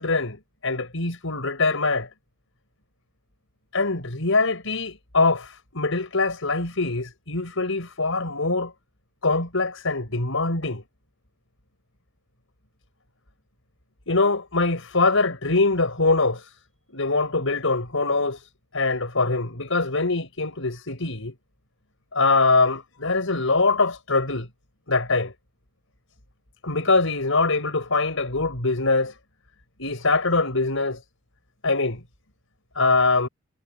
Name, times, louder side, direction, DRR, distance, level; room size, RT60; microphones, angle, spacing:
voice 1, 0.0-2.1 3.7-8.7 9.2-10.8 14.1-16.5 16.9-18.5 18.7-21.3 22.1-24.5 24.9-25.3 26.6-29.1 29.8-31.0 31.6-32.0 32.8-33.3, left 3 dB, 65° left, 7.1 m, -23 dB
head